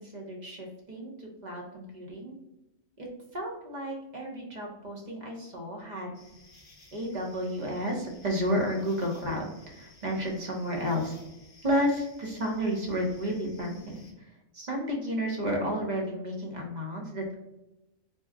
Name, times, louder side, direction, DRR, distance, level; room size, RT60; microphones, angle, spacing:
voice 1, 0.0-2.3 3.0-3.1 3.3-6.2 6.9-11.2 11.6-17.4, equal, 35° right, -1 dB, 0.9 m, -32 dB
sound 1, 6.1-14.1, left 2 dB, 35° left, 0.7 m, -57 dB
4.4 x 2.3 x 3.5 m, 0.96 s
omnidirectional pair, 1.4 m